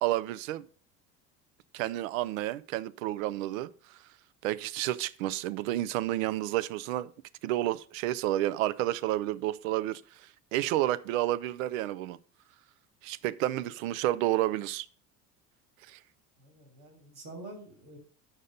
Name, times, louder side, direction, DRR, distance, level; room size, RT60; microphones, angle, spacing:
voice 1, 0.0-0.7 1.7-4.0 4.4-7.1 7.4-12.2 13.0-14.9 15.9-16.0, right 14 dB, 60° right, 0.7 m, -30 dB
voice 2, 16.4-18.0, right 2 dB, 80° right, 2.8 m, -47 dB
8.9 x 6.4 x 5.2 m
figure-of-eight pair, 65°, 46 cm